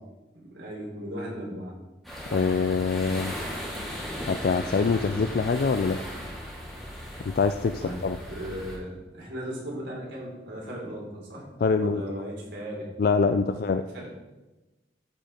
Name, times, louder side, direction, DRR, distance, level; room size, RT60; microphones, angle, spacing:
voice 1, 0.4-1.7 7.8-8.0 8.3-11.4 11.8-12.9 13.2-13.7 13.9-14.1, equal, 80° right, -3 dB, 3.6 m, -37 dB
sound 1, 2.0-8.8, equal, ahead, 2.2 m, -37 dB
voice 2, 2.3-3.4 4.3-6.0 7.2-8.2 11.6-12.0 13.0-13.8, left 4 dB, 55° left, 8 dB, 0.4 m, -24 dB
13.0 x 5.3 x 4.4 m, 1.1 s
head